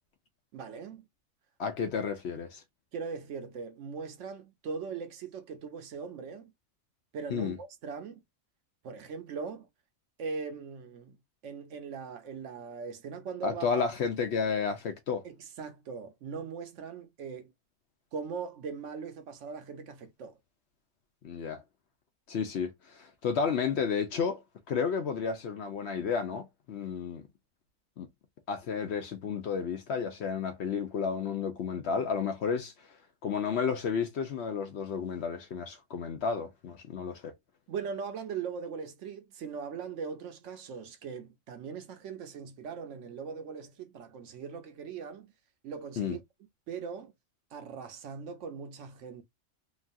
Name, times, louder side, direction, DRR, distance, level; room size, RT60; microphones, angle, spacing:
voice 1, 0.5-1.0 2.9-6.5 7.1-8.2 8.8-9.7 10.2-11.2 11.4-13.8 15.2-17.5 18.1-20.4 37.7-45.3 45.6-46.2 46.7-47.1 47.5-49.2, right 5 dB, 70° right, 0.9 m, -40 dB
voice 2, 1.6-2.6 7.3-7.6 13.4-15.2 21.2-21.6 22.3-24.4 24.7-27.2 28.0-28.1 28.5-32.9 33.2-37.3 46.0-46.2, left 6 dB, 65° left, 0.7 m, -32 dB
3.0 x 2.3 x 2.5 m
omnidirectional pair, 1.4 m